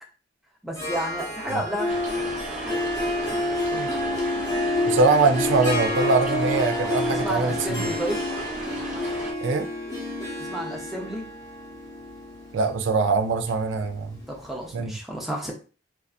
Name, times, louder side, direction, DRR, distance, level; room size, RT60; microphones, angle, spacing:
voice 1, 0.6-1.9 7.1-8.2 10.4-11.2 14.3-15.5, right 1 dB, ahead, -1 dB, 0.5 m, -31 dB
Harp, 0.7-14.3, left 1 dB, 15° left, 0.9 m, -29 dB
sound 1, 1.9-9.3, equal, 40° right, 0.6 m, -36 dB
voice 2, 4.9-7.9 9.4-9.7 12.5-14.2 14.7-14.9, right 4 dB, 75° right, 7 dB, 0.4 m, -23 dB
2.6 x 2.3 x 2.4 m, 0.35 s
head